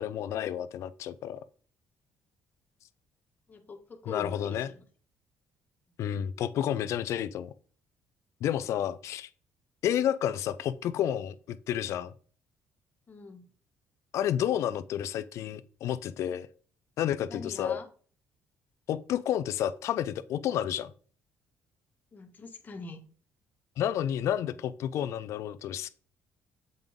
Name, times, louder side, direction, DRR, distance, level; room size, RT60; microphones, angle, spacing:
voice 1, 0.0-1.4 4.1-4.7 6.0-7.5 8.4-9.3 9.8-12.1 14.1-16.5 17.0-17.8 18.9-20.9 23.8-25.9, left 10 dB, 70° left, 0.6 m, -30 dB
voice 2, 3.5-4.9 13.1-13.5 17.3-17.9 22.1-23.0, left 4 dB, 35° left, 1.6 m, -43 dB
7.8 x 5.3 x 3.7 m
cardioid pair, 90°, 5 cm